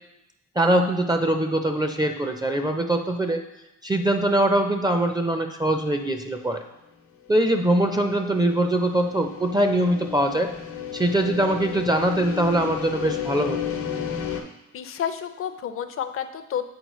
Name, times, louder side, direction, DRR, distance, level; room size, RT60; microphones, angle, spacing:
voice 1, 0.6-3.4 3.8-6.6 7.3-10.5 10.9-13.6, right 1 dB, 15° right, 5 dB, 0.5 m, -22 dB
sound 1, 7.7-14.4, left 8 dB, 85° left, 0.9 m, -33 dB
voice 2, 14.7-16.7, left 9 dB, 45° left, 9 dB, 0.5 m, -30 dB
8.0 x 4.2 x 3.1 m, 0.92 s
cardioid pair, 90°, 30 cm